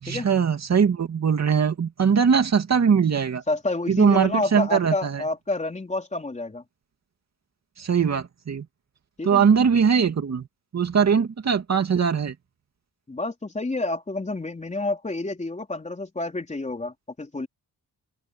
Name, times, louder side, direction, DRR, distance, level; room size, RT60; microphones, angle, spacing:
voice 1, 0.0-3.4 3.9-5.2 7.8-8.7 9.2-10.5 10.7-12.3, right 6 dB, 45° right, 2.6 m, -21 dB
voice 2, 3.5-6.6 9.2-9.4 13.1-17.5, left 2 dB, 20° left, 3.8 m, -29 dB
open air
cardioid pair, 115°, 37 cm